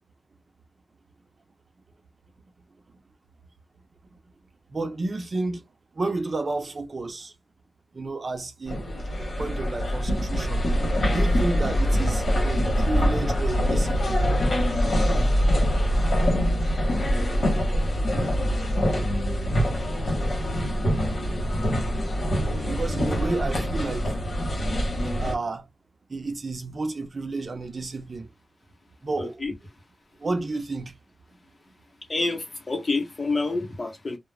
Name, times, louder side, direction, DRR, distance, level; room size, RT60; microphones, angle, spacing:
voice 1, 4.7-5.6 5.9-7.3 7.9-8.8 9.4-10.7 11.1-14.2 22.7-24.2 25.2-25.7 26.1-28.3 29.0-29.4 30.2-31.0, right 3 dB, 50° right, 0.6 m, -31 dB
sound 1, 8.7-25.3, equal, 65° left, 1.1 m, -24 dB
voice 2, 29.2-29.5 32.1-34.2, left 3 dB, 40° left, 0.9 m, -28 dB
2.4 x 2.0 x 3.2 m
wide cardioid pair, 85°, 0 cm